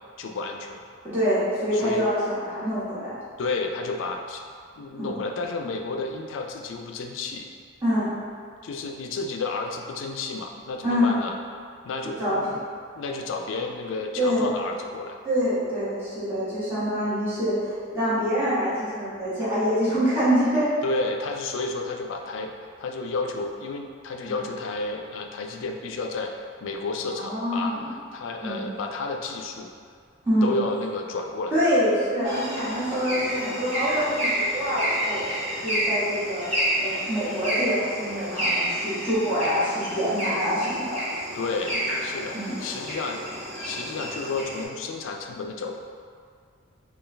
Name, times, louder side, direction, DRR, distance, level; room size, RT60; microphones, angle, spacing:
voice 1, 0.2-0.8 1.7-2.0 3.4-4.4 4.8-7.5 8.6-11.4 11.8-12.6 12.9-15.2 20.8-22.5 22.8-26.3 26.6-27.8 28.1-29.7 30.4-31.6 41.3-43.2 43.6-45.8, left 3 dB, 70° left, 3 dB, 0.4 m, -31 dB
voice 2, 1.1-3.1 5.0-5.1 7.8-8.1 10.8-11.2 12.0-12.4 14.2-14.5 15.2-17.5 17.9-20.7 24.2-24.4 27.2-27.8 28.4-28.7 30.2-30.5 31.5-35.2 35.6-36.5 36.8-41.0 42.3-42.5, equal, 10° right, -14 dB, 1.4 m, -25 dB
sound 1, 32.2-44.6, equal, 35° right, 1.4 m, -30 dB
4.4 x 2.3 x 3.2 m, 2.2 s
head